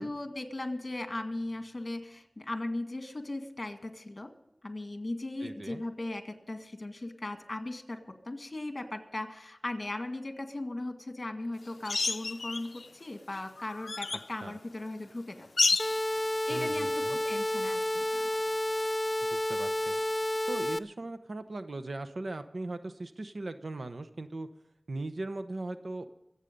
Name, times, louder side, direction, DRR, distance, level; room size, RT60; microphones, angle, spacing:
voice 1, 0.0-4.3 4.6-15.5 16.5-18.3, left 2 dB, 35° left, 6 dB, 1.9 m, -38 dB
voice 2, 5.4-5.8 14.4-14.6 16.5-17.2 19.2-20.0 20.5-24.5 24.9-26.1, right 2 dB, 70° right, 9 dB, 0.9 m, -39 dB
sound 1, 11.8-12.9 13.3-14.3 15.6-16.1 18.3-18.4, left 3 dB, 80° left, 0.5 m, -30 dB
sound 2, 15.8-20.8, left 1 dB, 15° left, 0.4 m, -30 dB
24.0 x 8.3 x 5.3 m, 0.85 s
wide cardioid pair, 70°, 0 cm